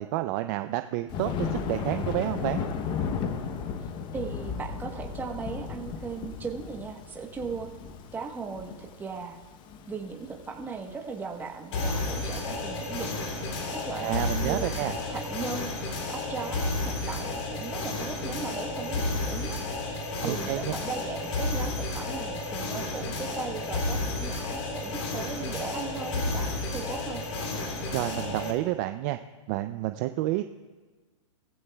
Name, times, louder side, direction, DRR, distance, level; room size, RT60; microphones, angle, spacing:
voice 1, 0.0-2.6 14.0-15.0 20.2-20.7 27.9-29.2 29.5-30.4, right 16 dB, 35° right, 9 dB, 0.4 m, -29 dB
Thunder, 1.1-12.2, left 6 dB, 30° left, 0.8 m, -35 dB
voice 2, 3.8-7.7 8.1-9.4 9.9-13.1 13.7-15.7 16.1-19.6 20.2-27.2, right 5 dB, 10° right, 2 dB, 1.1 m, -38 dB
sound 1, 11.7-28.5, left 2 dB, 60° left, 3.2 m, -32 dB
18.0 x 15.0 x 2.3 m, 1.3 s
hypercardioid pair, 140°, 17 cm